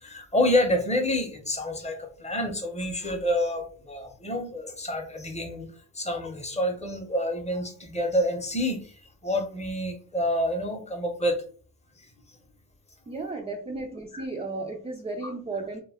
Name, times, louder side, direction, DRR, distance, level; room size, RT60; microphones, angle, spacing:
voice 1, 0.0-5.7 5.9-8.9 9.2-11.4 14.1-14.2 15.2-15.3, left 1 dB, 15° left, 3 dB, 0.7 m, -28 dB
voice 2, 13.1-15.8, right 3 dB, 15° right, 2 dB, 0.3 m, -34 dB
2.2 x 2.1 x 3.3 m, 0.43 s
cardioid pair, 95°, 40 cm